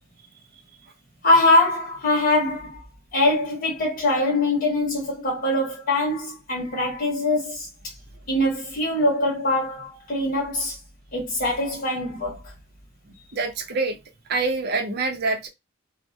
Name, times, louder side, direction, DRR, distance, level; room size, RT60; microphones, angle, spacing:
voice 1, 1.2-2.8 3.1-7.9 8.3-10.8 11.1-12.5, left 2 dB, 40° left, 0.8 m, -23 dB
voice 2, 13.3-14.0 14.3-15.5, right 3 dB, 50° right, 0.5 m, -25 dB
2.2 x 2.1 x 2.6 m
head